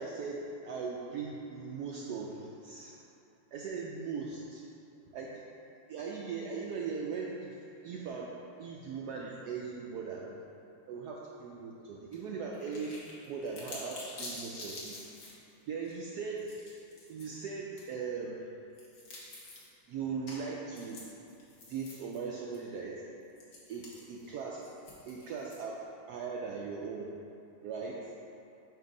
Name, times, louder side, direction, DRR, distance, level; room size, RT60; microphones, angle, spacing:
voice 1, 0.0-3.0 3.5-4.6 5.1-5.4 5.9-7.6 7.8-8.3 8.6-10.4 10.9-13.0 13.3-15.1 15.7-16.5 17.1-18.5 19.6-21.1 21.7-23.0 23.7-24.6 25.1-25.8 26.1-27.1 27.6-28.1, right 5 dB, 75° right, -3 dB, 0.9 m, -39 dB
sound 1, 12.1-12.2 12.5-15.3 15.9-16.0 16.4-17.3 17.8-17.9 18.8-19.7 20.3-20.4 20.7-22.2 22.5-22.6 23.4-25.8, left 2 dB, 60° left, 1.7 m, -47 dB
7.8 x 2.6 x 5.1 m, 2.6 s
omnidirectional pair, 2.1 m